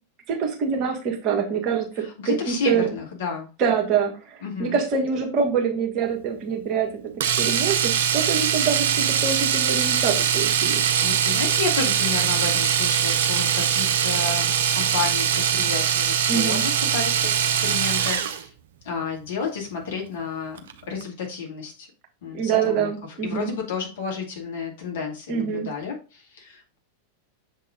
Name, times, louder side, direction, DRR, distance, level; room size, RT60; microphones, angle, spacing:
voice 1, 0.3-2.9 3.6-6.9 7.4-10.8 16.3-16.6 22.3-23.5 25.3-25.7, right 6 dB, 35° right, 1 dB, 1.5 m, -25 dB
voice 2, 2.0-3.5 4.4-4.8 10.6-18.5 18.8-20.6 20.9-21.9 22.2-26.8, left 5 dB, 55° left, 0 dB, 2.3 m, -31 dB
Domestic sounds home sounds, 7.2-18.4 20.6-20.7 21.0-21.1, right 8 dB, 60° right, 0.7 m, -22 dB
7.2 x 3.8 x 3.8 m, 0.33 s
figure-of-eight pair, 90°, 0 cm